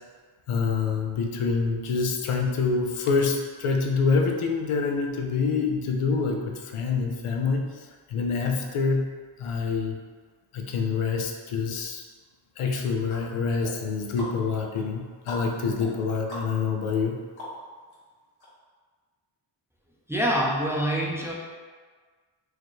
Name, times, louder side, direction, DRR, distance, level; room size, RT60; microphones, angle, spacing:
voice 1, 0.5-9.1 9.4-10.0 10.5-12.0 12.6-17.2, left 4 dB, 85° left, 2 dB, 0.6 m, -26 dB
sound 1, 12.6-18.0 18.4-18.5, left 1 dB, 65° left, 1.5 m, -42 dB
voice 2, 20.1-21.3, equal, 5° right, -4 dB, 0.5 m, -25 dB
4.8 x 2.2 x 3.1 m, 1.5 s
wide cardioid pair, 85°, 50 cm